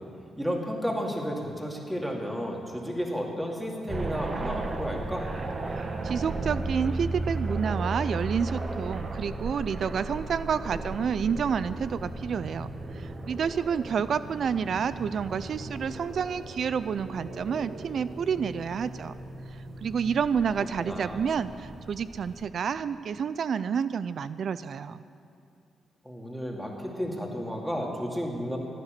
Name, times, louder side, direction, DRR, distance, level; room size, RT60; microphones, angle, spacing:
voice 1, 0.4-5.3 20.8-21.2 26.0-28.6, equal, 5° right, 0 dB, 2.5 m, -32 dB
sound 1, 3.9-22.4, right 2 dB, 45° right, 1.4 m, -36 dB
voice 2, 5.7-19.2 19.5-25.0, right 7 dB, 65° right, 15 dB, 0.3 m, -29 dB
15.5 x 9.9 x 6.8 m, 2.5 s
cardioid pair, 75°, 0 cm